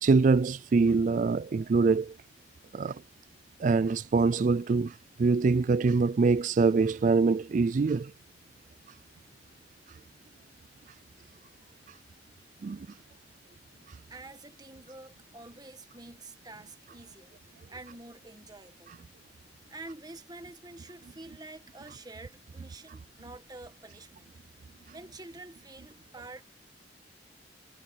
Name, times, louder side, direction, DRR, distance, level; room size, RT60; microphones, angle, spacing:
voice 1, 0.0-2.1 2.7-3.0 3.6-8.1 12.6-12.9, right 4 dB, 45° right, 0.3 m, -24 dB
voice 2, 14.1-17.3 17.7-18.9 19.7-24.3 24.9-26.4, right 2 dB, 20° right, 1.4 m, -47 dB
head